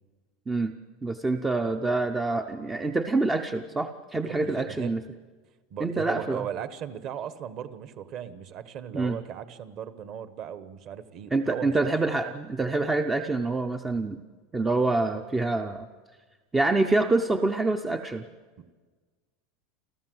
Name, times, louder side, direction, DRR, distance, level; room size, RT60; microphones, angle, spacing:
voice 1, 1.0-5.0 5.8-6.4 8.9-9.2 11.3-14.2 14.5-15.9 16.5-18.3, right 2 dB, 10° right, 7 dB, 0.6 m, -26 dB
voice 2, 4.2-5.0 5.7-11.9 18.6-18.7, right 9 dB, 35° right, 13 dB, 1.1 m, -37 dB
28.5 x 14.0 x 7.8 m, 1.4 s
supercardioid pair, 175°, 0 cm